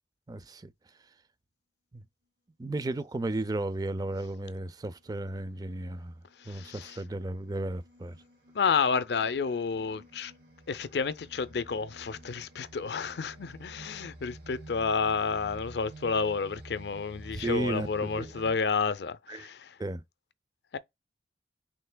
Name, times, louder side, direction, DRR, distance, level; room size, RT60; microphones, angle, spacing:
voice 1, 0.3-0.7 1.9-2.0 2.6-6.1 6.5-8.2 17.3-18.3 19.3-19.5 19.8-20.0, right 2 dB, 20° right, 0.4 m, -34 dB
sound 1, 4.1-4.2 4.8-18.5, right 2 dB, 65° right, 2.1 m, -51 dB
voice 2, 6.4-7.0 7.6-7.7 8.5-10.3 10.7-19.8 20.7-20.8, left 5 dB, 65° left, 0.5 m, -30 dB
5.6 x 3.2 x 2.2 m
head